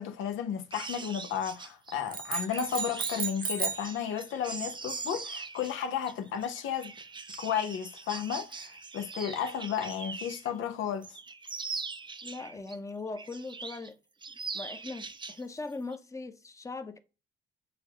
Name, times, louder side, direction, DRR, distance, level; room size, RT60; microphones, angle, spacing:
voice 1, 0.0-6.9 7.3-11.2, left 8 dB, 80° left, 0.7 m, -33 dB
sound 1, 0.7-10.5 10.9-12.8 13.2-13.9 14.2-15.4 15.7-16.0, right 4 dB, 25° right, 0.5 m, -42 dB
sound 2, 2.1-3.9, right 5 dB, 45° right, 0.9 m, -33 dB
voice 2, 12.2-14.0 14.5-17.0, left 3 dB, 15° left, 0.7 m, -40 dB
6.6 x 2.3 x 2.8 m
cardioid pair, 90°, 20 cm